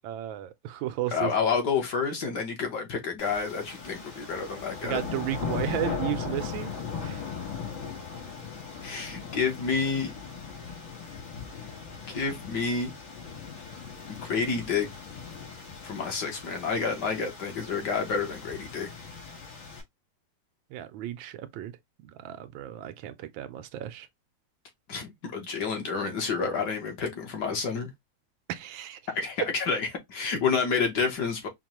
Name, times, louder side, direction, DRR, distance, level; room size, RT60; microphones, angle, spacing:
voice 1, 0.0-1.5 4.8-6.7 7.0-7.3 20.7-21.8 22.0-24.1 28.5-29.0, right 13 dB, 85° right, 1.4 m, -34 dB
voice 2, 1.1-5.0 8.8-10.1 12.1-12.9 14.1-14.9 15.8-18.9 24.9-27.9 29.1-31.5, left 5 dB, 65° left, 1.6 m, -29 dB
sound 1, 3.2-19.8, left 6 dB, 80° left, 2.4 m, -38 dB
5.2 x 2.2 x 2.9 m
omnidirectional pair, 2.1 m